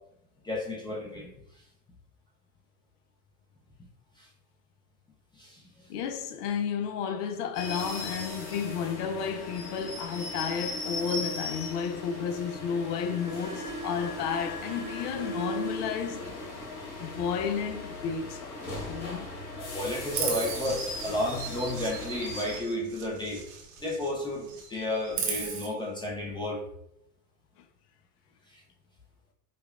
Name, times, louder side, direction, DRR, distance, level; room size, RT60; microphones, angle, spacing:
voice 1, 0.4-1.3 4.2-4.3 5.4-5.6 19.6-23.4 23.8-26.6, left 1 dB, 10° left, 0.5 m, -32 dB
voice 2, 5.9-16.3 17.0-18.6 18.9-19.3, left 7 dB, 70° left, 0.6 m, -32 dB
sound 1, 7.5-22.6, left 2 dB, 90° left, 1.3 m, -38 dB
Chirp tweet, 20.1-24.1 24.4-25.7, right 5 dB, 65° right, 1.0 m, -36 dB
5.0 x 2.1 x 2.4 m
hypercardioid pair, 100°, 49 cm